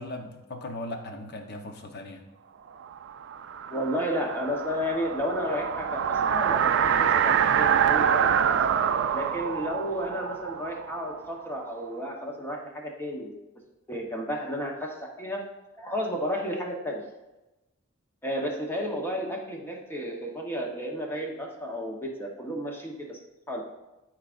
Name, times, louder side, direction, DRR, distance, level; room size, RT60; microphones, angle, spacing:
voice 1, 0.0-2.2, left 1 dB, 50° left, 4 dB, 0.9 m, -38 dB
sound 1, 2.9-11.7, right 8 dB, 55° right, 0.3 m, -26 dB
voice 2, 3.7-8.5 9.1-13.5 13.9-15.4 15.8-17.0 18.2-23.2 23.5-23.6, equal, 10° left, 0 dB, 1.0 m, -32 dB
12.5 x 4.7 x 2.5 m, 1.0 s
head